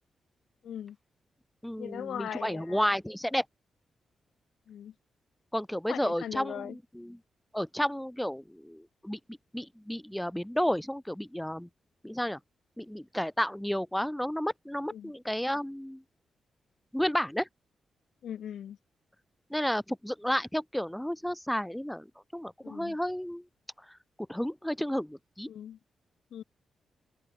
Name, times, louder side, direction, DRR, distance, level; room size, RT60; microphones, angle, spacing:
voice 1, 0.6-1.0 1.8-2.9 4.7-4.9 5.9-6.8 14.9-15.1 18.2-18.8 22.6-23.0 25.5-25.8 26.3-26.4, left 9 dB, 75° left, 5.1 m, -39 dB
voice 2, 1.6-3.4 5.5-7.2 7.5-9.2 9.5-11.7 12.0-12.4 12.8-16.0 16.9-17.5 19.5-22.1 22.3-23.4 24.3-25.5, equal, 5° left, 4.6 m, -32 dB
wide cardioid pair, 170°, 0 cm